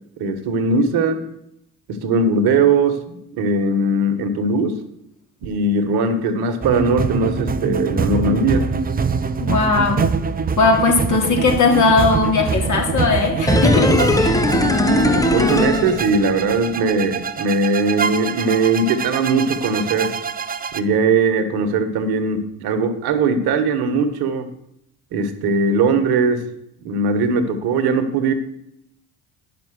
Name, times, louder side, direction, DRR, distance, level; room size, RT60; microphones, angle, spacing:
voice 1, 0.2-1.2 1.9-4.8 5.4-8.7 14.8-20.1 20.7-24.5 25.1-26.4 26.8-28.3, right 3 dB, 55° right, 9 dB, 1.5 m, -19 dB
sound 1, 6.6-20.8, right 5 dB, 20° right, 0.6 m, -25 dB
voice 2, 9.4-10.0 10.6-13.9 14.2-14.4, left 3 dB, 40° left, 0 dB, 3.2 m, -18 dB
sound 2, 13.5-16.6 16.9-17.0, left 1 dB, 10° left, 1.0 m, -18 dB
10.0 x 6.1 x 6.4 m, 0.77 s
hypercardioid pair, 60°, 44 cm